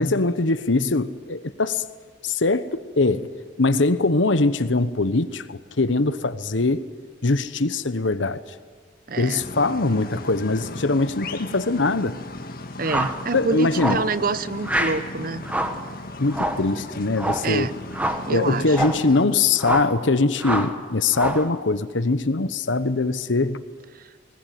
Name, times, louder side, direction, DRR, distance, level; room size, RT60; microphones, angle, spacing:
voice 1, 0.0-1.8 2.2-3.3 3.6-6.8 7.2-8.4 9.2-12.2 13.3-14.0 16.2-17.7 18.3-23.6, left 3 dB, 85° left, 1.1 m, -22 dB
voice 2, 9.1-9.4 12.8-15.4 17.4-17.7 18.3-18.8, right 3 dB, 50° right, 0.8 m, -26 dB
sound 1, 9.4-19.3, left 2 dB, 50° left, 1.8 m, -37 dB
sound 2, 12.8-13.2 13.8-14.1 14.6-15.0 15.4-15.8 16.3-16.7 17.2-17.5 17.9-18.3 18.7-19.0 19.6-20.0 20.4-20.8 21.1-21.5, right 1 dB, 10° right, 1.4 m, -26 dB
21.0 x 19.5 x 9.4 m
head